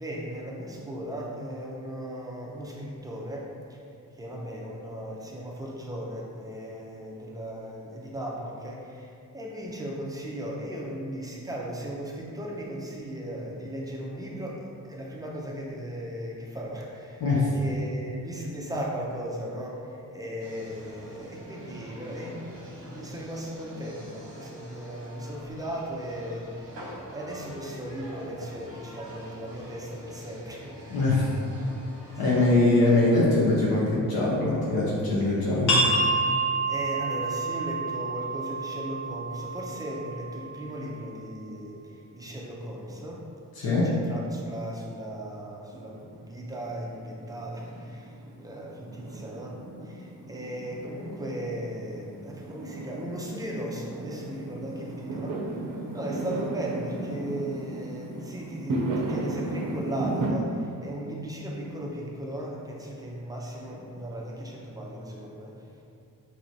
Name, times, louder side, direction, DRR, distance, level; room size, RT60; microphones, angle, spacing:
voice 1, 0.0-3.8 4.1-31.1 32.1-32.4 36.1-43.3 43.6-65.8, equal, 10° right, -3 dB, 0.5 m, -37 dB
sound 1, 20.4-32.6, right 1 dB, 40° right, 1.0 m, -45 dB
voice 2, 30.9-31.3 32.2-35.8 43.6-43.8, left 2 dB, 80° left, -7 dB, 0.9 m, -22 dB
sound 2, 35.7-41.1, right 2 dB, 55° left, 1.1 m, -28 dB
Fireworks, 45.7-60.3, right 2 dB, 65° right, 0.6 m, -35 dB
4.5 x 3.0 x 2.7 m, 2.5 s
wide cardioid pair, 145°, 35 cm